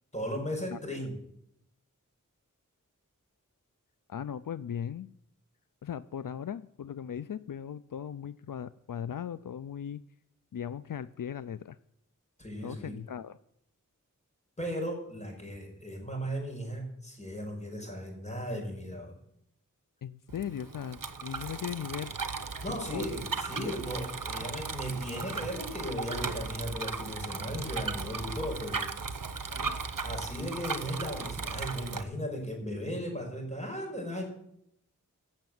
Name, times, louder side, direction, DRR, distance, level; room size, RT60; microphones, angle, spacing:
voice 1, 0.1-1.2 12.4-13.0 14.6-19.1 21.4-21.6 22.6-28.9 30.0-34.2, equal, 20° left, 1 dB, 5.3 m, -36 dB
voice 2, 4.1-5.1 5.8-10.0 10.5-11.8 12.6-13.4 20.0-22.1 22.7-23.1 29.5-29.8, left 8 dB, 80° left, 15 dB, 0.5 m, -38 dB
Bicycle, 20.3-32.0, right 5 dB, 80° right, 1.0 m, -37 dB
16.5 x 6.7 x 7.8 m, 0.75 s
wide cardioid pair, 55°, 33 cm